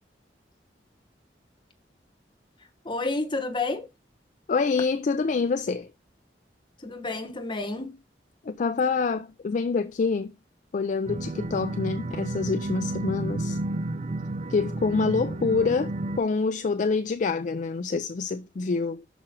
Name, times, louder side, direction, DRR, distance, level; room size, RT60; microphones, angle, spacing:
voice 1, 2.8-3.9 6.8-8.0, left 3 dB, 30° left, 1.2 m, -30 dB
voice 2, 4.5-5.9 8.4-10.3 10.7-13.6 14.5-19.0, left 4 dB, 45° left, 0.4 m, -26 dB
sound 1, 11.1-16.2, right 2 dB, 40° right, 0.4 m, -31 dB
6.0 x 5.0 x 4.4 m
head